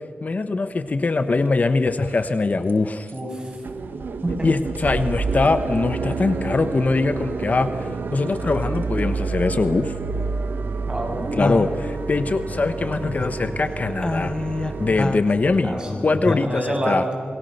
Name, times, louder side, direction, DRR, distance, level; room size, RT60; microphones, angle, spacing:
voice 1, 0.2-3.1 4.4-9.9 11.4-14.3 14.8-15.8 16.0-17.0, left 3 dB, 50° left, 11 dB, 1.0 m, -22 dB
sound 1, 1.4-1.5 2.0-2.4 2.7-2.8 3.1-3.2 3.5-15.0, right 4 dB, 75° right, 1.6 m, -29 dB
voice 2, 3.1-3.6 4.2-4.5 10.9-11.4 15.6-17.1, right 1 dB, 25° right, 1 dB, 7.3 m, -28 dB
sound 2, 11.4-13.6 13.9-16.5, left 2 dB, 30° left, 1.2 m, -29 dB
27.5 x 22.0 x 6.7 m, 2.1 s
cardioid pair, 70°, 3 cm